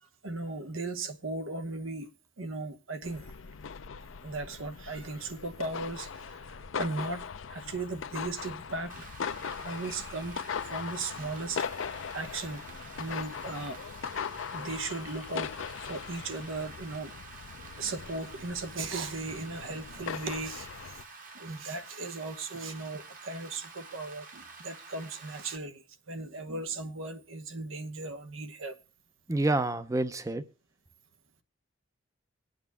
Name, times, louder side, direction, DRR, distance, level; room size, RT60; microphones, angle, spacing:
voice 1, 0.0-2.1 2.4-3.3 4.2-9.1 9.6-11.6 12.1-12.6 13.0-13.8 14.5-17.1 17.8-21.0 21.3-28.8, right 3 dB, 85° right, 1.1 m, -37 dB
sound 1, 3.0-21.0, left 6 dB, 80° left, 0.5 m, -40 dB
Rain, 8.9-25.6, right 4 dB, 40° right, 1.2 m, -49 dB
voice 2, 29.3-30.4, right 2 dB, 15° right, 0.5 m, -28 dB
23.5 x 8.9 x 2.2 m
head